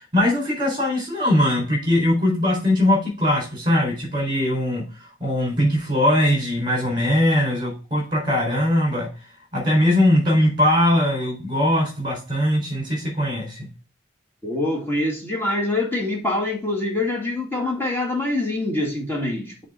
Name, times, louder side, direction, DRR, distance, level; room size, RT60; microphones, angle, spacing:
voice 1, 0.0-4.8 5.2-9.1 9.5-13.7, left 1 dB, 25° right, 4.0 m, -20 dB
voice 2, 14.4-19.6, left 2 dB, 10° left, 1.8 m, -25 dB
7.3 x 3.7 x 5.4 m
head